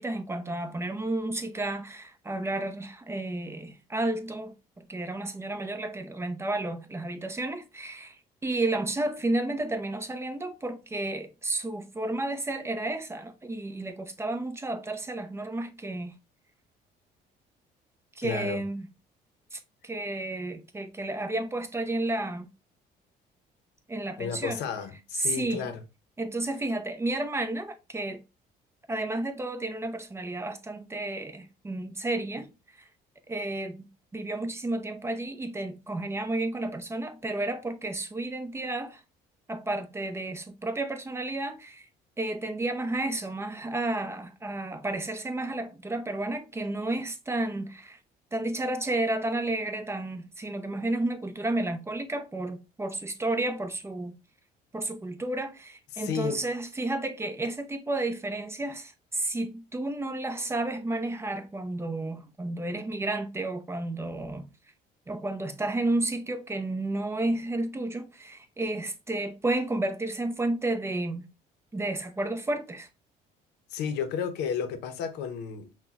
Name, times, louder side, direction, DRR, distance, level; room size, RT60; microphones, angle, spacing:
voice 1, 0.0-4.5 4.9-16.1 18.2-18.9 19.5-22.5 23.9-24.6 25.2-25.7 26.2-28.2 28.9-32.5 32.8-32.9 33.3-33.8 34.1-39.0 39.5-41.9 42.2-48.0 48.3-54.1 54.7-64.5 65.1-71.2 71.7-72.9, right 2 dB, 15° right, 0.5 m, -31 dB
voice 2, 18.2-18.6 24.2-25.8 55.9-56.4 73.7-75.7, left 7 dB, 85° left, 0.6 m, -32 dB
5.6 x 2.1 x 2.3 m
cardioid pair, 110°, 17 cm